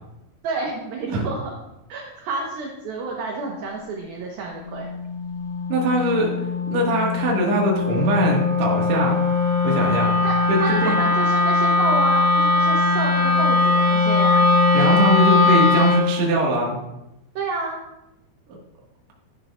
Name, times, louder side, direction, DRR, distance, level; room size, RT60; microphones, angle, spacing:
voice 1, 0.4-1.5 1.9-4.9 10.2-14.5 17.4-17.8, right 3 dB, 70° right, -1 dB, 2.4 m, -29 dB
Wind instrument woodwind instrument, 4.5-16.1, left 3 dB, 30° left, 0.5 m, -20 dB
voice 2, 5.7-9.2 9.6-10.2 10.5-10.9 14.7-16.8, right 1 dB, 55° right, -2 dB, 2.1 m, -22 dB
13.0 x 10.5 x 2.5 m, 0.91 s
omnidirectional pair, 5.6 m